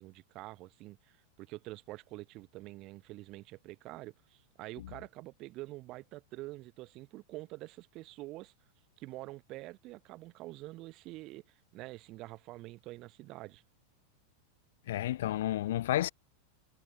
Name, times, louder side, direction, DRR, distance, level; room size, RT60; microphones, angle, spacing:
voice 1, 0.0-8.5 9.0-13.6, right 19 dB, 40° right, 3.1 m, -46 dB
voice 2, 14.9-16.1, left 13 dB, 55° left, 0.5 m, -31 dB
figure-of-eight pair, 90°, 0 cm